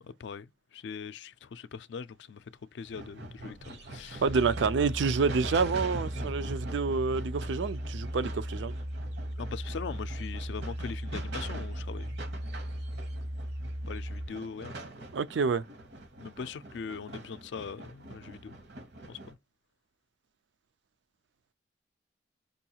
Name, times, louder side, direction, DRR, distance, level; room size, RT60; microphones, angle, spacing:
voice 1, 0.0-2.4 2.7-4.2 9.4-12.2 13.9-14.8 16.2-18.5 19.1-19.4, left 6 dB, 70° left, 0.4 m, -41 dB
sound 1, 2.8-19.3, right 2 dB, 65° right, 0.9 m, -44 dB
voice 2, 4.2-8.7 15.1-15.6, right 5 dB, 80° right, 0.4 m, -28 dB
sound 2, 4.3-14.3, equal, 15° right, 0.3 m, -37 dB
5.2 x 2.3 x 2.7 m
head